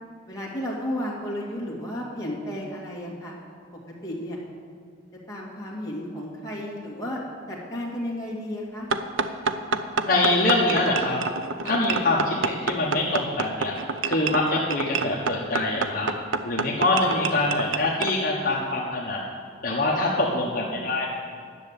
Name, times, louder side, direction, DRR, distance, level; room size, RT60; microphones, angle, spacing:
voice 1, 0.3-3.3 4.0-4.4 5.3-7.2 7.5-8.9 11.6-11.8 20.1-20.9, equal, 20° left, -5 dB, 2.4 m, -33 dB
sound 1, 8.9-18.2, right 4 dB, 80° right, 0.6 m, -28 dB
voice 2, 10.0-11.2 11.6-13.8 14.1-16.1 16.4-19.2 19.6-21.1, left 2 dB, 45° left, -4 dB, 1.3 m, -24 dB
10.5 x 6.7 x 9.0 m, 2.3 s
head